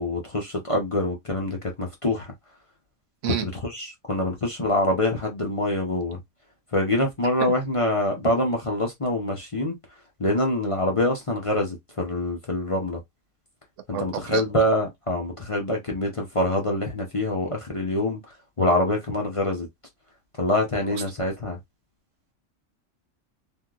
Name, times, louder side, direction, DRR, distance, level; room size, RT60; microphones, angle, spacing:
voice 1, 0.0-2.3 3.3-6.2 6.7-9.8 10.2-13.0 13.9-19.7 20.4-21.6, left 1 dB, 30° left, 0.7 m, -25 dB
voice 2, 13.9-14.4, right 9 dB, 75° right, 0.9 m, -28 dB
3.5 x 2.6 x 2.4 m
omnidirectional pair, 1.3 m